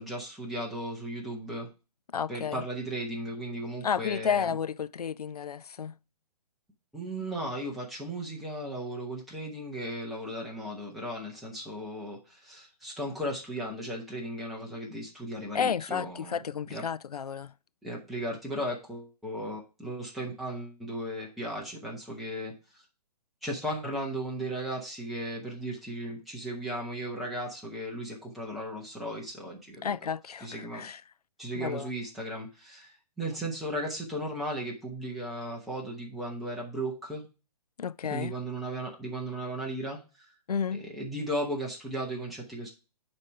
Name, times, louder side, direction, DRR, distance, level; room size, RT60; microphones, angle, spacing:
voice 1, 0.0-1.7 2.3-4.5 6.9-16.4 16.7-16.8 17.8-22.8 23.4-30.1 30.4-30.8 31.4-37.3 38.1-40.3 40.7-42.7, right 1 dB, ahead, 1.2 m, -36 dB
voice 2, 2.1-2.6 3.8-5.9 15.5-17.5 29.8-31.0 31.6-31.9 37.8-38.3 40.5-40.8, left 7 dB, 75° left, 0.4 m, -32 dB
9.7 x 3.5 x 4.8 m
figure-of-eight pair, 125°, 20 cm